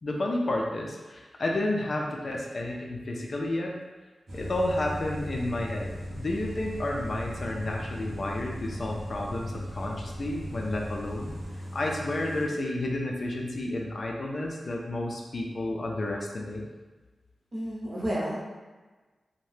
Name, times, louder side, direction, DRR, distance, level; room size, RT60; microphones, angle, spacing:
voice 1, 0.0-3.7 4.3-11.3 11.7-16.7, left 1 dB, 50° left, 0 dB, 0.4 m, -31 dB
sound 1, 4.3-11.4, equal, 20° right, 0.4 m, -42 dB
sound 2, 4.3-12.5, equal, 80° right, 0.7 m, -39 dB
voice 2, 17.5-18.4, equal, 40° right, -6 dB, 0.7 m, -31 dB
2.7 x 2.1 x 3.2 m, 1.3 s
wide cardioid pair, 125°, 0 cm